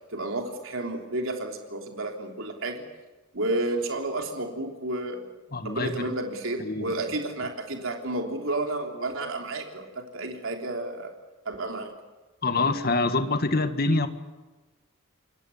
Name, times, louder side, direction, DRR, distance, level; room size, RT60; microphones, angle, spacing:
voice 1, 0.1-2.8 3.3-5.3 5.6-11.1 11.4-11.9, right 2 dB, 70° right, 3 dB, 3.4 m, -31 dB
voice 2, 5.5-6.0 6.6-6.9 12.4-14.1, left 3 dB, 45° left, 9 dB, 1.7 m, -25 dB
28.0 x 21.5 x 7.2 m, 1.2 s
head